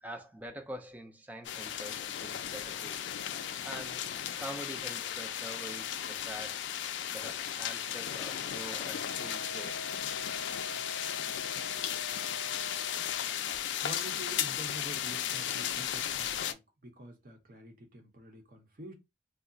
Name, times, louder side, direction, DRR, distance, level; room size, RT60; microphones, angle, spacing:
voice 1, 0.0-3.0 3.3-4.1 4.4-6.6 7.1-10.0, right 1 dB, 10° right, 0.4 m, -45 dB
sound 1, 1.4-16.5, left 10 dB, 90° left, 0.3 m, -35 dB
Wind instrument woodwind instrument, 8.9-13.3, left 1 dB, 85° right, 0.7 m, -45 dB
voice 2, 13.8-18.9, right 1 dB, 50° right, 0.8 m, -47 dB
2.3 x 2.0 x 3.8 m
head